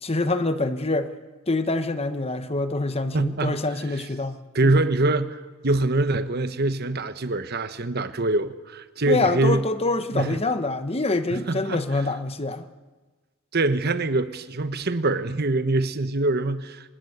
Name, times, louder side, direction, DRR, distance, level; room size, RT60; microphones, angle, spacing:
voice 1, 0.0-1.1 1.5-4.7 9.1-12.7, left 2 dB, 30° left, 1.1 m, -25 dB
voice 2, 3.1-3.6 3.9-4.0 4.5-9.6 10.1-10.4 11.3-11.8 13.5-16.9, right 2 dB, 50° right, 1.1 m, -24 dB
25.5 x 20.0 x 8.1 m
head